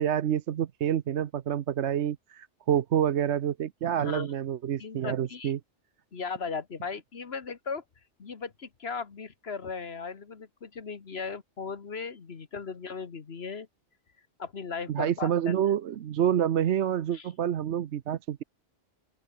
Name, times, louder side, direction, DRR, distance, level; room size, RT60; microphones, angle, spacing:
voice 1, 0.0-5.6 14.9-18.4, right 10 dB, 70° right, 1.0 m, -28 dB
voice 2, 4.8-5.5 6.1-7.8 8.2-13.7 14.4-15.5 17.1-17.3, left 5 dB, 60° left, 1.7 m, -37 dB
open air
omnidirectional pair, 1.2 m